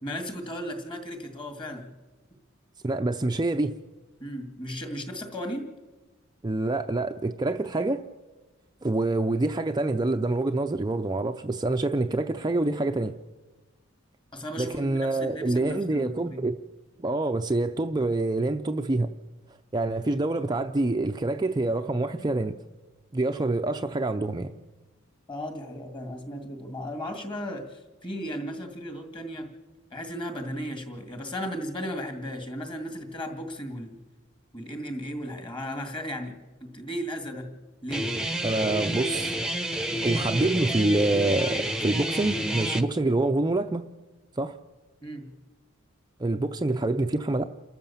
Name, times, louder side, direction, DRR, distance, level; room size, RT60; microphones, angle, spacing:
voice 1, 0.0-1.9 4.2-5.7 14.3-16.4 25.3-29.5 29.9-34.0 34.5-37.5 37.8-38.1 45.0-45.3, equal, 25° left, 2.3 m, -35 dB
voice 2, 2.8-3.8 6.4-8.0 8.8-13.1 14.6-16.6 17.0-19.1 19.7-22.6 23.1-24.5 38.4-39.4 40.0-43.8 44.4-44.6 46.2-47.4, right 2 dB, 20° right, 0.6 m, -26 dB
Guitar, 37.9-42.8, right 1 dB, 5° right, 0.9 m, -29 dB
29.0 x 13.5 x 7.2 m
head